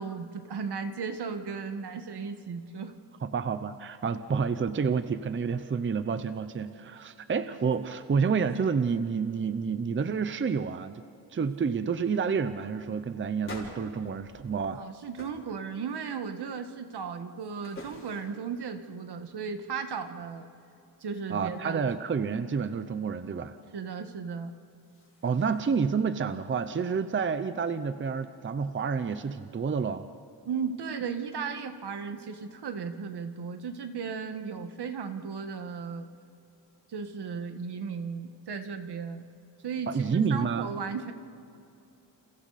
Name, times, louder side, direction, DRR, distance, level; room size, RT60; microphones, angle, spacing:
voice 1, 0.0-2.9 14.7-20.5 21.0-21.9 23.7-24.5 30.4-36.1 36.9-39.2 39.6-41.1, right 6 dB, 75° right, 7 dB, 1.7 m, -36 dB
voice 2, 3.2-11.0 11.3-14.8 21.3-23.6 25.2-30.1 39.9-40.7, right 5 dB, 30° right, 11 dB, 0.7 m, -29 dB
sound 1, 7.7-7.8 8.1-9.0 9.2-9.6 9.9-10.4 11.0-11.1 11.4-11.6 12.1-12.3 13.4-14.8 15.2-15.5 15.9-16.4 16.9-18.5 24.5-25.9, left 2 dB, 30° left, 5.0 m, -49 dB
30.0 x 28.5 x 4.2 m, 2.7 s
wide cardioid pair, 160°, 40 cm